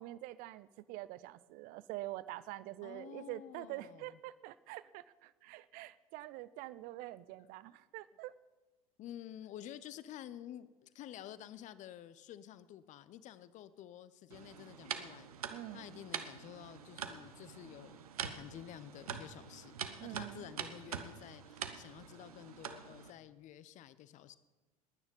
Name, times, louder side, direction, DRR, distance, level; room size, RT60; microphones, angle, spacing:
voice 1, 0.0-8.3 15.5-16.0 20.0-20.5, right 16 dB, 45° right, 18 dB, 0.6 m, -46 dB
voice 2, 2.8-4.2 9.0-15.3 15.7-19.7 20.0-24.4, left 11 dB, 40° left, 16 dB, 0.8 m, -51 dB
sound 1, 14.3-23.1, right 8 dB, 70° right, 1.0 m, -45 dB
20.0 x 9.5 x 5.4 m, 1.2 s
figure-of-eight pair, 70°, 19 cm